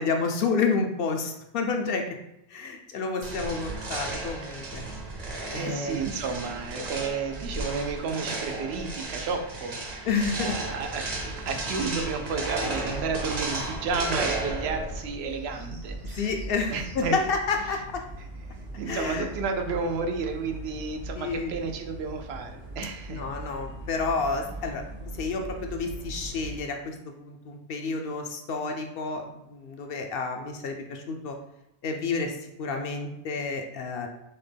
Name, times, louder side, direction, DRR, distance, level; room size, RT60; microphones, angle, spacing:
voice 1, 0.0-2.1 2.5-4.8 5.5-6.0 10.1-10.5 16.0-18.0 18.9-19.3 21.2-21.6 23.1-31.4 31.8-34.1, left 4 dB, 70° left, 3 dB, 0.7 m, -30 dB
sound 1, 3.2-15.1, right 2 dB, 45° right, 0.7 m, -34 dB
voice 2, 5.6-10.1 10.4-16.3 16.7-17.1 18.8-23.2, right 4 dB, 85° right, 5 dB, 0.8 m, -32 dB
sound 2, 10.2-26.6, right 1 dB, 65° right, 1.3 m, -41 dB
5.7 x 2.1 x 3.3 m, 0.86 s
omnidirectional pair, 1.1 m